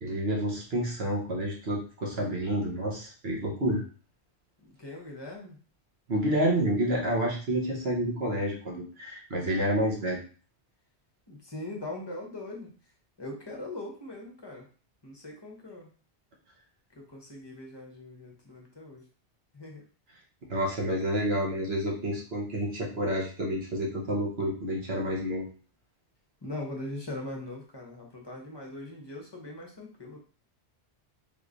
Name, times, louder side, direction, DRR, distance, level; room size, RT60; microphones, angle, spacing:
voice 1, 0.0-3.8 6.1-10.2 20.5-25.5, equal, 65° right, -2 dB, 1.2 m, -29 dB
voice 2, 4.6-5.6 11.3-12.7 13.2-14.7 15.0-15.9 17.0-19.0 19.5-19.8 26.4-30.2, left 2 dB, 25° left, 0 dB, 0.8 m, -41 dB
3.5 x 3.0 x 2.5 m, 0.38 s
omnidirectional pair, 1.1 m